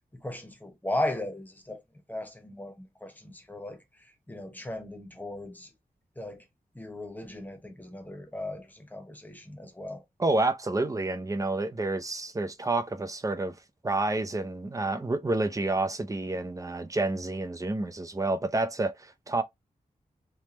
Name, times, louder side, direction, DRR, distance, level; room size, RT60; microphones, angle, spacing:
voice 1, 0.1-1.8 2.1-5.7 6.2-6.4 6.7-10.0, left 1 dB, 10° left, 1.0 m, -37 dB
voice 2, 10.2-13.6 13.8-19.4, right 2 dB, 20° right, 0.5 m, -29 dB
3.3 x 3.2 x 2.9 m
wide cardioid pair, 130°, 15 cm